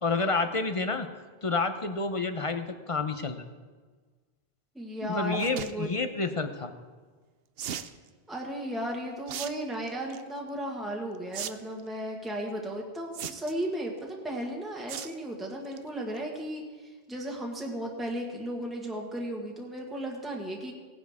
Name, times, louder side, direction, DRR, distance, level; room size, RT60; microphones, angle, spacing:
voice 1, 0.0-1.1 1.4-3.4 5.0-6.7, left 3 dB, 35° left, 8 dB, 0.7 m, -29 dB
voice 2, 4.7-5.9 8.3-20.7, right 1 dB, ahead, -1 dB, 1.5 m, -35 dB
sound 1, 5.3-5.7 7.6-7.9 9.3-9.5 9.9-10.2 11.3-11.5 11.8-11.9 13.1-13.6 14.9-15.1 15.5-15.8 16.2-16.3 16.4-16.5, right 9 dB, 65° right, 0.8 m, -36 dB
18.5 x 10.0 x 3.6 m, 1.4 s
omnidirectional pair, 1.1 m